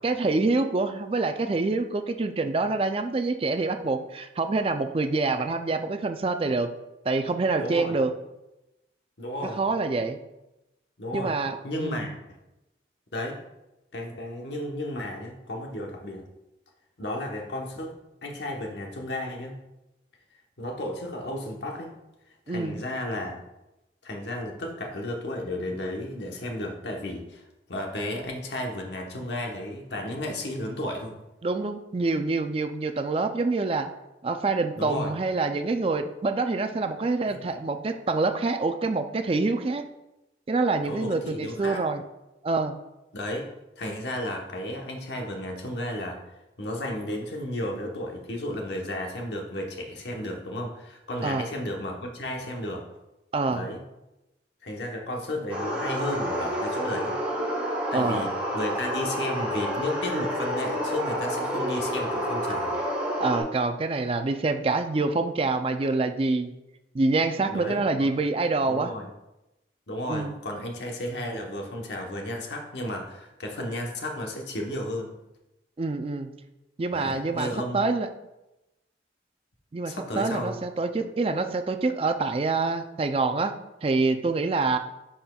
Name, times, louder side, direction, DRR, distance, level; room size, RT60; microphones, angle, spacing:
voice 1, 0.0-6.7 7.1-8.1 9.6-10.2 11.1-12.1 22.5-22.8 31.4-33.9 34.2-39.8 40.5-42.0 42.4-42.8 51.2-51.5 53.3-53.7 57.9-58.3 63.2-66.5 66.9-68.9 70.1-70.4 75.8-76.3 76.8-78.1 79.7-83.5 83.8-84.8, right 3 dB, 30° right, 7 dB, 0.4 m, -26 dB
voice 2, 7.6-8.0 9.2-9.6 11.0-11.3 11.6-12.1 13.1-13.4 13.9-16.2 17.0-17.9 18.2-19.6 20.6-21.9 22.5-23.4 24.0-27.4 27.7-31.2 34.8-35.1 37.3-37.4 40.9-41.8 43.1-46.2 46.6-52.8 53.5-53.8 54.6-57.2 57.9-62.7 67.5-68.1 68.7-69.1 69.9-75.1 76.9-77.8 79.8-80.5, left 1 dB, 80° left, 1 dB, 1.1 m, -33 dB
sound 1, 55.5-63.4, equal, 10° right, 2.3 m, -29 dB
10.5 x 4.3 x 2.3 m, 0.96 s
head